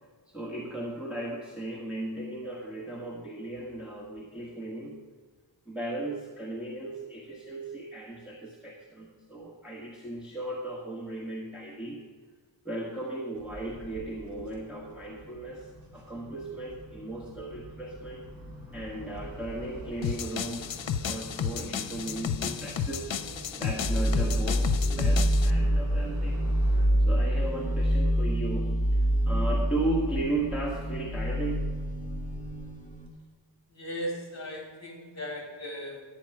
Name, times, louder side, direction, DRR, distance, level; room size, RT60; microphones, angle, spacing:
voice 1, 0.3-5.0 5.7-12.0 12.6-15.7 15.9-18.2 18.7-20.7 21.0-26.4 27.0-31.7, right 2 dB, ahead, -4 dB, 1.4 m, -36 dB
sound 1, 13.3-26.9, right 1 dB, 50° right, 3.8 m, -45 dB
sound 2, 20.0-25.5, left 8 dB, 80° left, 0.7 m, -33 dB
sound 3, 23.7-33.1, equal, 15° left, 1.6 m, -26 dB
voice 2, 33.7-36.0, equal, 35° left, 0 dB, 3.0 m, -37 dB
11.5 x 9.3 x 4.7 m, 1.5 s
wide cardioid pair, 140°, 44 cm